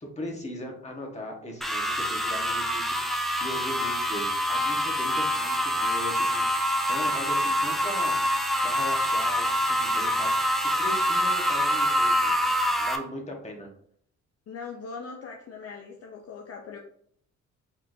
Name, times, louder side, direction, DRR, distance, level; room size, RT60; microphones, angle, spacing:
voice 1, 0.0-3.0 3.4-8.2 8.6-10.4 10.8-13.7, left 1 dB, 20° left, 1.3 m, -39 dB
sound 1, 1.6-13.0, equal, ahead, 0.6 m, -25 dB
voice 2, 14.5-16.8, left 5 dB, 55° left, 0.6 m, -40 dB
4.3 x 3.9 x 2.7 m
cardioid pair, 90°, 30 cm